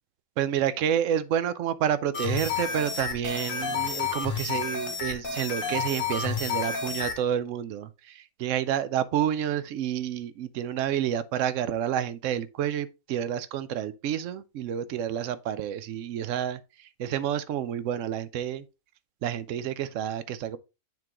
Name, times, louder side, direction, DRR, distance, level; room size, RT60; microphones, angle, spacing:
voice 1, 0.4-18.7 19.2-20.6, right 10 dB, 70° right, 0.8 m, -29 dB
sound 1, 2.1-7.2, left 6 dB, 65° left, 1.6 m, -30 dB
8.9 x 3.7 x 2.9 m
omnidirectional pair, 1.5 m